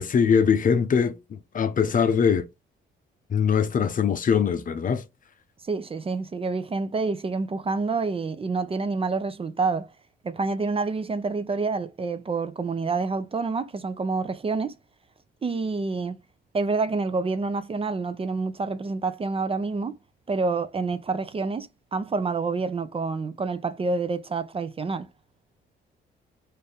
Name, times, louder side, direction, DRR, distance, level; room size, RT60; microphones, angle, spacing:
voice 1, 0.0-2.5 3.3-5.0, left 7 dB, 45° left, 0.7 m, -22 dB
voice 2, 5.6-9.9 10.2-14.7 15.4-16.2 16.5-20.0 20.3-25.1, right 4 dB, 30° right, 0.5 m, -28 dB
4.2 x 2.6 x 3.4 m
cardioid pair, 90°, 20 cm